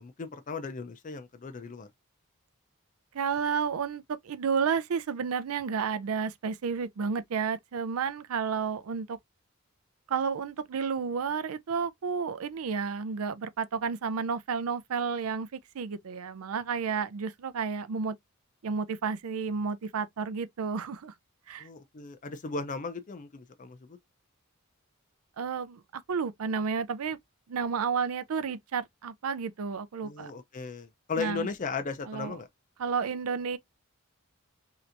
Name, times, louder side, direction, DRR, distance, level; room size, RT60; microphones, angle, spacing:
voice 1, 0.0-1.9 21.6-24.0 30.0-32.5, left 4 dB, 40° left, 0.5 m, -36 dB
voice 2, 3.1-9.2 10.1-18.2 18.6-21.1 21.5-21.7 25.4-27.2 27.5-30.3 31.2-31.5 32.1-32.4 32.8-33.6, right 6 dB, 90° right, 0.5 m, -31 dB
3.3 x 2.8 x 2.5 m
head